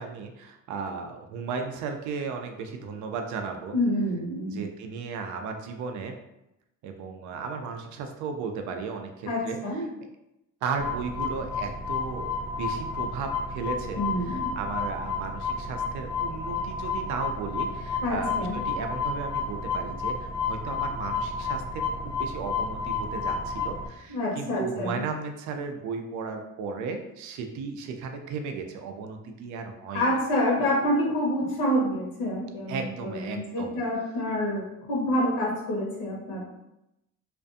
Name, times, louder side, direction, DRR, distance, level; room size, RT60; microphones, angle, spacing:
voice 1, 0.0-3.8 4.4-6.2 6.8-9.6 10.6-12.3 12.6-30.1 32.7-33.8, right 5 dB, 65° right, 5 dB, 0.5 m, -35 dB
voice 2, 3.7-4.6 9.3-9.8 14.0-14.5 18.0-18.6 24.1-25.0 29.9-36.5, left 1 dB, 80° left, -4 dB, 0.9 m, -27 dB
sound 1, 10.8-23.9, left 4 dB, 5° right, 0.5 m, -31 dB
2.5 x 2.2 x 2.5 m, 0.88 s
cardioid pair, 125°, 31 cm